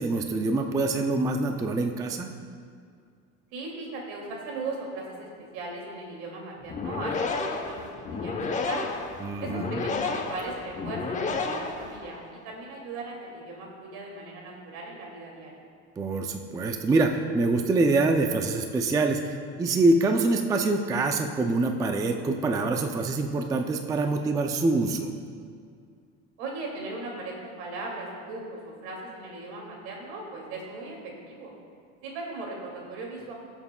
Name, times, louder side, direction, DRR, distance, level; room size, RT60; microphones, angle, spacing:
voice 1, 0.0-2.3 9.2-9.7 16.0-25.1, right 3 dB, 10° right, 4 dB, 0.3 m, -25 dB
voice 2, 3.5-7.1 7.5-8.9 9.4-15.5 26.4-31.5 32.0-33.3, right 2 dB, 90° right, -1 dB, 2.3 m, -38 dB
sound 1, 6.6-12.3, left 4 dB, 25° left, 0.7 m, -31 dB
19.5 x 7.1 x 2.2 m, 2.2 s
cardioid pair, 140°, 32 cm